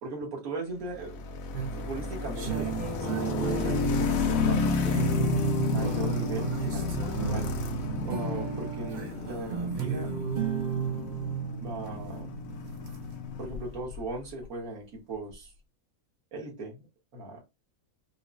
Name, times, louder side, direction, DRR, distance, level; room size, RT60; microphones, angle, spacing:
voice 1, 0.0-1.2 1.7-2.7 3.0-5.0 5.6-7.5 8.0-10.1 11.6-12.3 13.4-15.5 16.3-16.8 17.1-17.4, right 2 dB, 85° right, 1.7 m, -38 dB
sound 1, 0.9-14.1, left 6 dB, 80° left, 1.1 m, -32 dB
sound 2, 1.5-13.2, right 7 dB, 55° right, 0.5 m, -33 dB
5.0 x 2.0 x 2.5 m
omnidirectional pair, 1.4 m